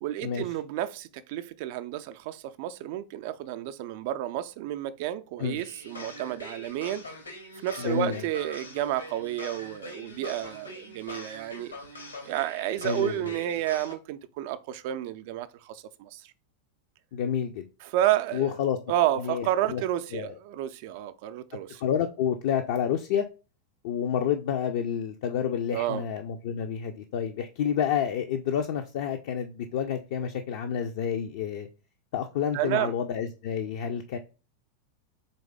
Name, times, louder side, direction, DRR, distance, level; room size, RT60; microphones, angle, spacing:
voice 1, 0.0-7.0 7.6-11.7 12.3-16.3 17.8-18.6 18.9-21.8 25.7-26.0 32.5-32.9, right 13 dB, 50° right, 0.4 m, -31 dB
sound 1, 5.5-13.9, left 2 dB, 80° left, 1.1 m, -43 dB
voice 2, 7.8-8.2 12.8-13.3 17.1-17.7 18.3-18.8 19.2-19.8 20.1-20.4 21.8-23.3 23.8-31.7 32.1-34.2, left 8 dB, 50° left, 0.4 m, -29 dB
4.0 x 3.2 x 3.6 m
figure-of-eight pair, 90°, 0 cm